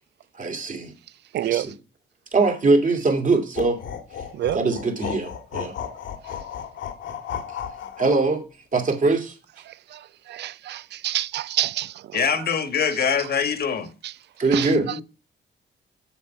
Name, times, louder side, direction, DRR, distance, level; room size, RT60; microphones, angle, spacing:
voice 1, 0.3-0.9 1.4-1.6 2.3-3.8 4.5-5.7 8.0-8.5 8.7-9.4 14.4-14.8, right 3 dB, 40° right, 2.5 m, -22 dB
voice 2, 1.3-1.7 4.3-4.6 6.3-6.4 9.7-12.2 13.2-13.3 14.0-14.1 14.5-15.0, right 13 dB, 60° right, 0.4 m, -28 dB
sound 1, 3.6-8.3, left 8 dB, 75° left, 1.6 m, -34 dB
voice 3, 12.1-13.9 14.7-15.0, left 6 dB, 50° left, 1.4 m, -24 dB
7.2 x 7.2 x 4.5 m
cardioid pair, 90°, 20 cm